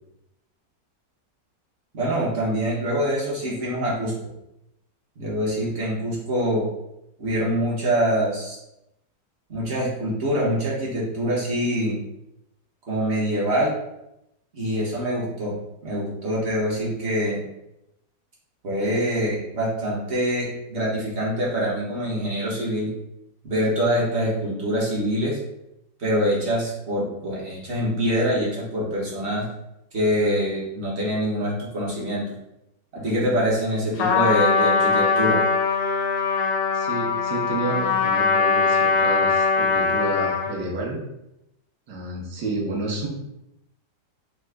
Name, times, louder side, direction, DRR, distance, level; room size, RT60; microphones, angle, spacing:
voice 1, 1.9-4.1 5.2-6.6 7.2-8.6 9.5-12.0 12.9-13.7 14.5-15.5 15.8-17.4 18.6-22.9 23.4-25.4 26.0-29.5 29.9-32.2 32.9-35.4, equal, 50° right, -6 dB, 0.9 m, -24 dB
Trumpet, 34.0-40.6, left 4 dB, 90° left, 1.3 m, -21 dB
voice 2, 36.7-41.0 41.9-43.1, right 2 dB, 70° right, -2 dB, 1.3 m, -30 dB
3.5 x 2.0 x 3.3 m, 0.87 s
omnidirectional pair, 1.9 m